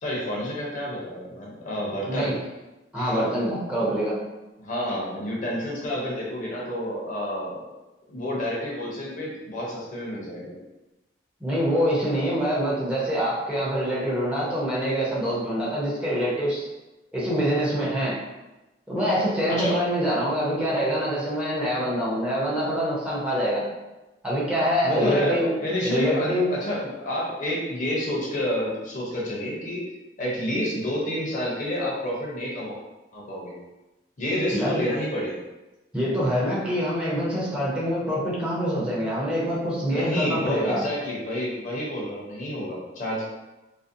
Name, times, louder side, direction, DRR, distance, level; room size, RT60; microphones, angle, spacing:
voice 1, 0.0-2.3 2.9-3.2 4.6-7.6 8.1-10.6 19.5-19.8 24.8-29.8 30.2-32.8 33.1-33.5 34.2-35.4 39.8-43.2, equal, 45° left, -4 dB, 0.6 m, -29 dB
voice 2, 2.9-4.2 11.4-16.6 17.1-18.2 18.9-23.6 24.2-25.5 25.8-26.5 34.5-34.7 35.9-40.9, equal, 5° right, -7 dB, 0.6 m, -25 dB
2.5 x 2.0 x 2.5 m, 1.0 s
head